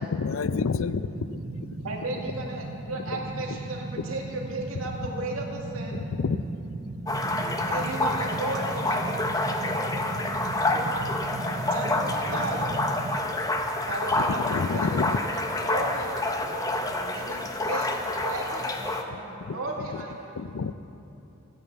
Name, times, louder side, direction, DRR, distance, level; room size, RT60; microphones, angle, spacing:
voice 1, 0.1-1.9 3.1-3.2 4.0-4.1 5.9-6.4 14.1-15.2 19.5-20.0 20.4-20.7, left 4 dB, 75° left, 14 dB, 0.5 m, -29 dB
sound 1, 1.1-13.2, right 2 dB, 35° right, 0.6 m, -36 dB
voice 2, 1.8-5.9 7.7-9.3 11.7-12.6 13.9-14.4 14.7-16.5 17.1-19.1 19.5-20.4, right 2 dB, 85° right, -1 dB, 2.2 m, -35 dB
sound 2, 7.1-19.0, left 2 dB, 15° left, 0.9 m, -28 dB
voice 3, 7.2-7.7 8.5-8.6 10.7-11.1 12.6-12.7 16.6-17.6 18.5-18.9 19.2-20.0, right 1 dB, 5° right, -3 dB, 2.2 m, -45 dB
14.0 x 9.1 x 8.3 m, 2.9 s
head